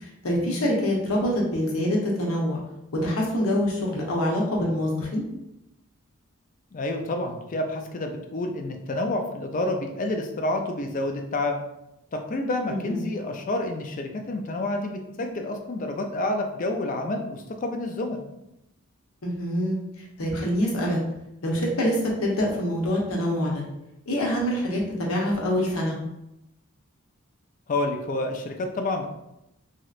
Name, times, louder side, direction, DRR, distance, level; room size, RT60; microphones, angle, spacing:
voice 1, 0.2-2.6 3.0-5.2 12.7-13.1 19.2-19.8 20.2-21.0 21.4-23.6 24.1-26.0, equal, 80° left, -2 dB, 0.8 m, -25 dB
voice 2, 6.7-11.6 12.1-18.2 27.7-29.1, left 2 dB, 40° left, 5 dB, 0.4 m, -29 dB
3.1 x 2.7 x 2.4 m, 0.86 s
head